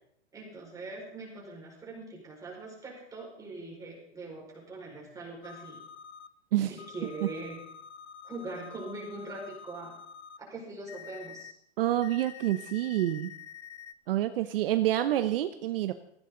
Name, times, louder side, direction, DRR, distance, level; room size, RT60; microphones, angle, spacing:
voice 1, 0.3-5.8 6.7-7.6 8.2-9.9 10.4-11.5, right 2 dB, 10° right, -3 dB, 5.1 m, -42 dB
sound 1, 5.4-6.3 6.8-10.4 10.9-11.5 12.0-13.9, left 7 dB, 80° left, 1.0 m, -47 dB
voice 2, 11.8-13.3 14.1-15.9, right 13 dB, 55° right, 10 dB, 0.9 m, -27 dB
18.5 x 15.5 x 3.9 m, 0.69 s
hypercardioid pair, 155°, 33 cm